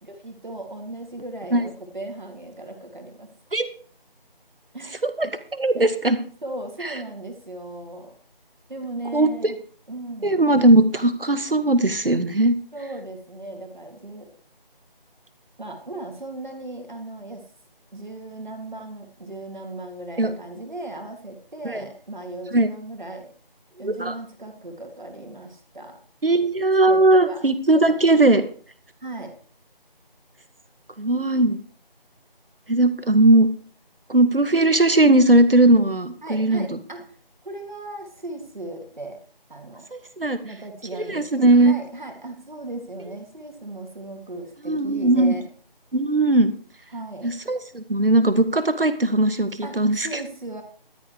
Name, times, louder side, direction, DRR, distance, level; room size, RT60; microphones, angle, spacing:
voice 1, 0.0-3.3 4.7-5.0 6.4-8.1 8.7-9.6 9.9-10.4 12.7-14.3 15.6-17.4 17.9-23.3 23.8-26.0 26.9-27.4 29.0-29.4 36.2-37.2 37.4-39.2 39.5-39.9 40.4-45.4 46.9-47.3 49.6-50.6, right 2 dB, 55° right, 4 dB, 3.7 m, -37 dB
voice 2, 5.0-6.2 6.8-7.0 9.1-9.5 10.2-12.5 20.2-20.3 21.6-21.8 22.5-22.7 23.8-24.1 26.2-28.4 31.0-31.6 32.7-33.5 34.1-36.8 39.9-40.4 41.1-41.7 44.6-45.3 45.9-46.5 47.2-50.1, right 2 dB, 70° right, 10 dB, 2.1 m, -19 dB
13.0 x 10.5 x 4.8 m, 0.42 s
figure-of-eight pair, 170°, 29 cm